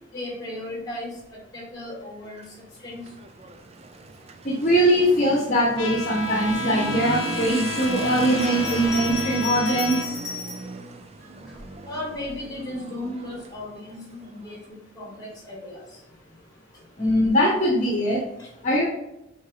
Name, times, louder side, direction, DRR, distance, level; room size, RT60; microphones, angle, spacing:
voice 1, 0.1-1.2 1.5-2.4 2.8-3.0 11.9-15.8 18.4-18.5, left 1 dB, 20° left, -2 dB, 2.4 m, -35 dB
Motorcycle / Accelerating revving vroom, 2.2-14.6, right 3 dB, 30° right, 0.5 m, -35 dB
voice 2, 4.4-10.1 17.0-18.2 18.6-18.8, equal, 40° left, -3 dB, 1.2 m, -21 dB
Trumpet, 5.8-10.1, left 2 dB, 70° left, 0.9 m, -31 dB
Bell, 8.3-10.7 11.5-12.4, left 4 dB, 5° right, 2.2 m, -35 dB
6.5 x 4.1 x 3.9 m, 0.86 s
head